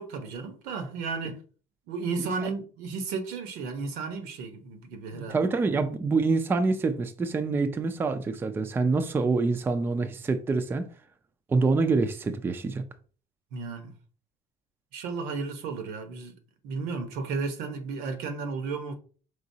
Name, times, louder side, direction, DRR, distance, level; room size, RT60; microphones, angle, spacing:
voice 1, 0.0-1.4 1.9-5.4 13.5-13.9 14.9-16.4 16.6-18.9, right 4 dB, 80° right, 1.0 m, -33 dB
voice 2, 2.2-2.5 5.1-10.9 11.5-12.8, right 3 dB, 15° right, 0.4 m, -26 dB
4.9 x 3.8 x 2.7 m
cardioid pair, 150°, 15 cm